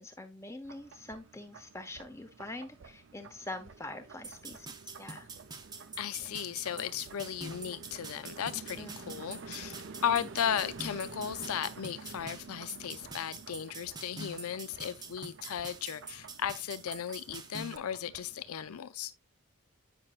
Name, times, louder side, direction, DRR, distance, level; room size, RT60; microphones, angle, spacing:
voice 1, 0.0-4.7 5.0-5.3 8.8-9.2, left 2 dB, 15° left, 0.8 m, -44 dB
sound 1, 0.6-18.8, right 4 dB, 60° right, 0.6 m, -50 dB
sound 2, 4.2-17.8, right 3 dB, 20° right, 0.7 m, -46 dB
voice 2, 6.0-19.1, left 9 dB, 90° left, 0.5 m, -36 dB
8.8 x 6.0 x 2.4 m
head